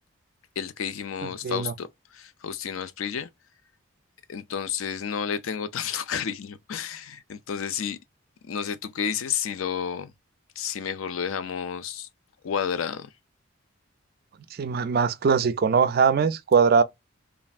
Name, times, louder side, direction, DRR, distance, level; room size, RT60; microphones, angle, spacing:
voice 1, 0.6-1.9 2.1-3.3 4.3-8.0 8.4-10.1 10.6-12.1 12.4-13.1, left 7 dB, 70° left, 0.4 m, -31 dB
voice 2, 1.2-1.7 14.6-16.8, right 6 dB, 45° right, 0.3 m, -21 dB
3.1 x 2.4 x 2.4 m
head